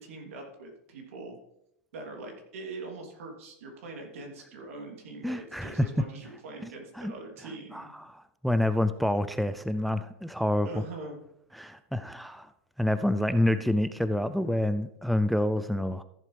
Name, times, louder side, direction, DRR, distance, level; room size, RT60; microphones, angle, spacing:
voice 1, 0.0-1.4 1.9-7.9 10.6-11.2, right 2 dB, 80° right, 2 dB, 3.1 m, -42 dB
voice 2, 5.2-5.9 7.0-7.1 7.7-10.7 11.5-12.5 12.8-16.0, left 1 dB, ahead, 12 dB, 0.4 m, -27 dB
14.5 x 7.5 x 3.4 m, 0.81 s
supercardioid pair, 130°, 7 cm